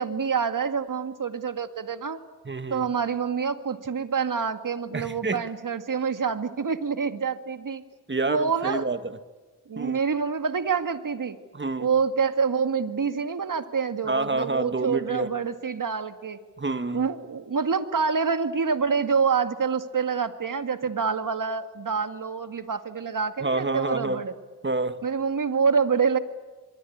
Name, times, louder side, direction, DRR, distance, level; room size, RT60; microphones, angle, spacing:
voice 1, 0.0-2.2 2.7-7.8 8.2-8.9 9.7-11.4 11.8-16.4 16.9-24.3 25.0-26.2, right 5 dB, 50° right, 9 dB, 2.0 m, -26 dB
voice 2, 2.4-2.9 4.9-5.4 8.1-9.2 9.8-10.0 11.5-11.9 14.1-15.3 16.6-17.1 23.4-24.2 24.6-25.0, right 3 dB, 30° right, 10 dB, 2.0 m, -28 dB
26.0 x 23.0 x 8.8 m, 1.3 s
supercardioid pair, 45°, 40 cm